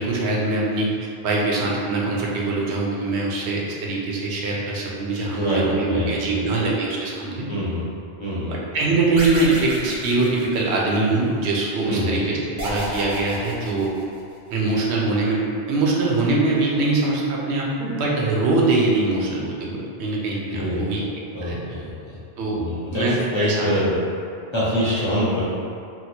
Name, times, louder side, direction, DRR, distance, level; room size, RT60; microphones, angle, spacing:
voice 1, 0.0-7.5 8.5-13.9 14.5-15.4 15.7-21.0 21.4-21.6 22.4-22.6 22.9-23.7, right 3 dB, 90° right, -3 dB, 0.9 m, -23 dB
voice 2, 5.3-6.4 7.5-7.9 8.2-8.5 11.9-12.2 20.5-22.2 22.6-24.0 24.5-25.4, equal, 30° left, -9 dB, 0.7 m, -25 dB
sound 1, 9.2-11.1 12.6-14.4, equal, 55° right, 0.8 m, -32 dB
2.9 x 2.1 x 4.1 m, 2.4 s
omnidirectional pair, 1.1 m